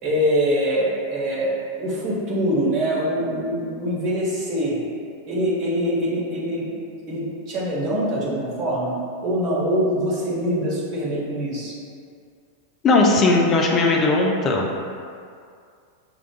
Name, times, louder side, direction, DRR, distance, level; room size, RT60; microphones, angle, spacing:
voice 1, 0.0-4.8 5.2-6.7 7.1-8.9 9.2-11.7, equal, 40° right, -7 dB, 1.4 m, -24 dB
voice 2, 12.8-14.7, left 3 dB, 30° left, 0 dB, 0.5 m, -18 dB
6.9 x 2.4 x 2.4 m, 2.3 s
figure-of-eight pair, 90°, 0 cm